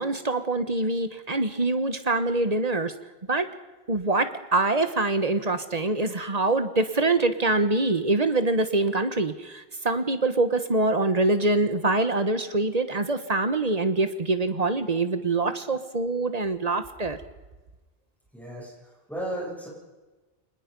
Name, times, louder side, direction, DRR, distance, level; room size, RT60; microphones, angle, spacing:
voice 1, 0.0-2.9 3.3-3.5 3.9-17.2, right 2 dB, 40° right, 10 dB, 1.3 m, -24 dB
voice 2, 18.3-18.7 19.1-19.7, right 1 dB, ahead, -4 dB, 7.9 m, -33 dB
25.0 x 20.0 x 5.4 m, 1.2 s
omnidirectional pair, 1.1 m